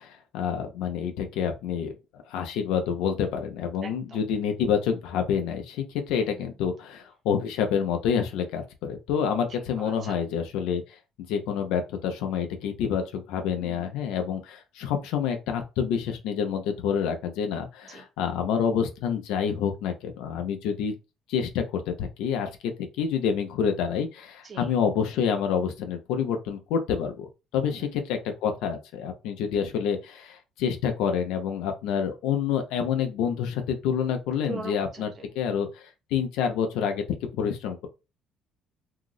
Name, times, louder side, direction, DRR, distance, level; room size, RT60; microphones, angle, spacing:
voice 1, 0.0-10.8 11.3-20.9 21.3-37.0 37.3-37.9, left 7 dB, 90° left, 0.7 m, -28 dB
voice 2, 3.8-4.2 9.8-10.3 13.6-13.9 17.9-18.0 24.4-24.8 27.7-27.9 34.5-35.3, right 3 dB, 35° right, 0.8 m, -41 dB
2.9 x 2.0 x 3.7 m
cardioid pair, 135°, 0 cm